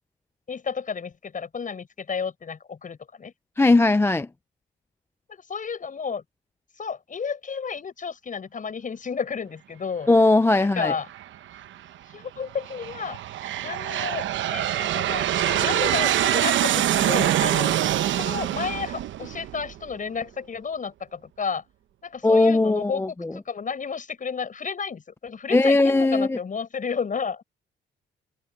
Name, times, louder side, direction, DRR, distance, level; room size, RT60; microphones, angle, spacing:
voice 1, 0.5-3.3 5.3-6.2 6.8-10.1 10.6-11.1 12.1-13.2 13.6-17.8 18.2-21.6 22.0-27.4, left 6 dB, 40° left, 7.1 m, -32 dB
voice 2, 3.6-4.3 10.1-10.9 22.2-23.3 25.5-26.4, left 2 dB, 10° left, 0.4 m, -19 dB
Aircraft, 11.1-11.7 12.4-19.9, right 12 dB, 70° right, 0.9 m, -25 dB
cardioid pair, 90°, 20 cm